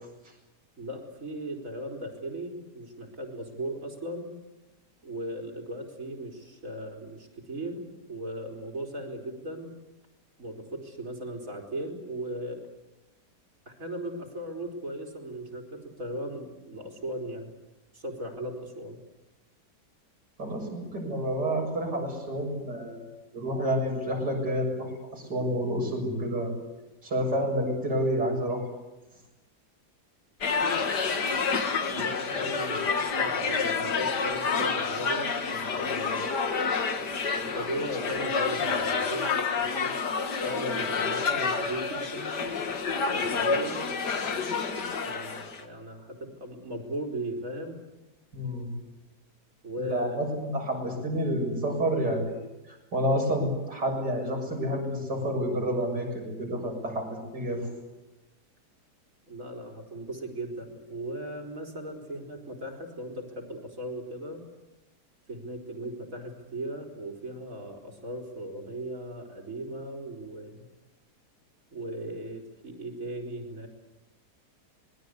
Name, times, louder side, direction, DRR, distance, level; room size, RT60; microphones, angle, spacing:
voice 1, 0.8-4.3 5.0-7.8 8.1-9.7 10.4-12.6 13.7-17.5 17.9-19.0 31.9-36.3 37.4-39.9 40.4-42.4 43.2-44.4 45.0-47.8 49.6-50.2 59.3-64.4 65.3-70.6 71.7-73.7, right 1 dB, 50° right, 1 dB, 4.6 m, -37 dB
voice 2, 20.4-23.0 23.3-26.5 27.0-28.6 48.3-48.7 49.9-52.4 52.9-57.1 57.3-57.7, equal, 80° right, 1 dB, 7.6 m, -29 dB
sound 1, 30.4-45.6, left 5 dB, 80° left, 2.3 m, -29 dB
26.5 x 21.0 x 8.3 m, 1.0 s
omnidirectional pair, 1.8 m